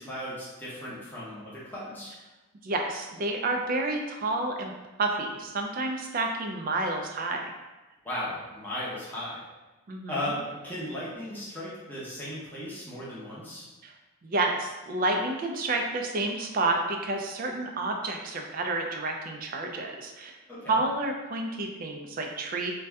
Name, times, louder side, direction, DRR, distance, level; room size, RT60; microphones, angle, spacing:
voice 1, 0.0-2.1 8.0-9.5 10.1-13.6 20.5-20.7, left 1 dB, 10° left, -8 dB, 0.7 m, -36 dB
voice 2, 2.6-4.7 5.0-7.4 9.9-10.2 13.8-13.9 14.2-20.3 20.7-22.7, right 2 dB, 40° right, 3 dB, 0.3 m, -29 dB
2.6 x 2.2 x 3.4 m, 1.1 s
head